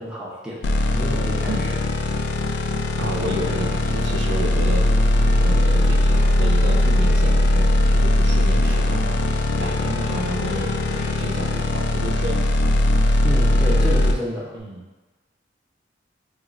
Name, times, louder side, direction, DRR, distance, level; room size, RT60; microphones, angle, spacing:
voice 1, 0.0-1.8 13.2-14.5, equal, 5° right, -6 dB, 0.7 m, -30 dB
sound 1, 0.6-14.1, left 1 dB, 75° left, 0.3 m, -19 dB
voice 2, 3.0-10.7 11.2-12.4 14.5-14.8, right 1 dB, 80° right, 2 dB, 0.4 m, -31 dB
sound 2, 3.2-11.1, left 2 dB, 45° left, 0.8 m, -37 dB
2.9 x 2.5 x 4.1 m, 1.2 s
head